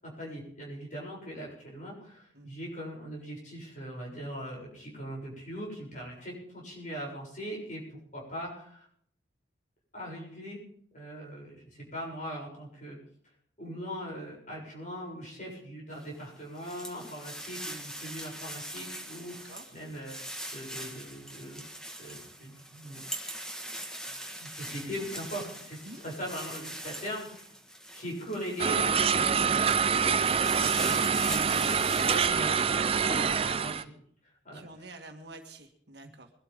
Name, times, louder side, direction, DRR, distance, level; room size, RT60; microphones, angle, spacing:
voice 1, 0.0-8.9 9.9-10.6 10.9-13.0 13.6-20.2 20.5-21.6 22.0-23.0 24.3-27.4 27.9-33.9 34.4-34.6 36.0-36.1, equal, 40° left, -2 dB, 7.3 m, -40 dB
sound 1, 16.0-28.8 29.3-32.3, right 1 dB, 5° left, 1.6 m, -41 dB
voice 2, 19.3-19.8 25.8-26.0 34.5-36.3, right 2 dB, 55° right, 4 dB, 1.8 m, -48 dB
sound 2, 28.6-33.8, right 6 dB, 30° right, 0.5 m, -26 dB
22.0 x 12.5 x 3.7 m, 0.64 s
head